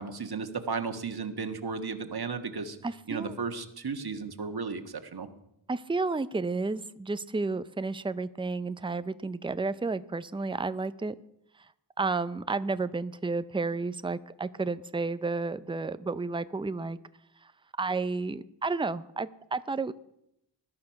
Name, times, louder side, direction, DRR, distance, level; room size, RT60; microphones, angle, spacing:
voice 1, 0.0-2.8 3.1-5.3, right 5 dB, 55° right, 7 dB, 1.6 m, -34 dB
voice 2, 2.8-3.4 5.7-11.2 12.0-17.0 17.4-17.5 17.8-19.9, right 3 dB, 10° right, 14 dB, 0.6 m, -31 dB
20.0 x 12.0 x 5.8 m, 0.81 s
wide cardioid pair, 85°, 44 cm